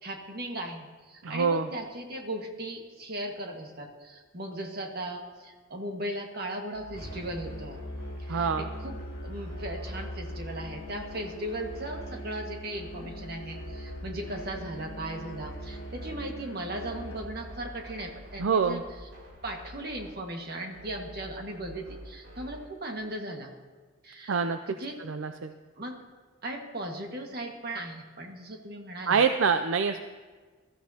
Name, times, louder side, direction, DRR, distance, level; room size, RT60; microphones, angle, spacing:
voice 1, 0.0-7.8 8.2-9.0 9.2-18.8 19.4-23.5 24.0-25.0 25.8-26.0 26.4-29.2, right 1 dB, 50° right, 2 dB, 1.7 m, -37 dB
voice 2, 1.2-1.7 8.3-8.7 18.4-18.8 24.3-24.6 25.1-25.5 29.1-30.0, right 5 dB, 75° right, 9 dB, 0.5 m, -25 dB
sound 1, 6.7-22.7, equal, 90° right, 4.9 m, -47 dB
Musical instrument, 6.9-17.3, equal, 30° left, 3.3 m, -41 dB
21.0 x 13.5 x 2.8 m, 1.4 s
head